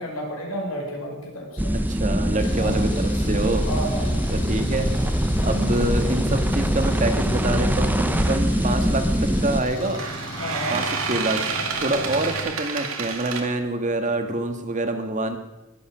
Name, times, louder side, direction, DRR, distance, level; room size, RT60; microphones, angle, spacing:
voice 1, 0.0-1.8 2.5-2.8 3.6-4.3 10.4-10.8 12.0-12.3, equal, 80° left, 0 dB, 5.8 m, -32 dB
sound 1, 1.6-9.6, equal, 10° right, 0.8 m, -23 dB
voice 2, 1.9-3.7 4.3-10.0 10.7-15.4, right 2 dB, 35° right, 6 dB, 1.6 m, -26 dB
Engine, 2.4-12.4, left 1 dB, 40° left, 4.9 m, -36 dB
sound 2, 8.2-8.5 9.8-13.4, right 5 dB, 80° right, 2.2 m, -29 dB
22.0 x 8.6 x 6.3 m, 1.1 s
head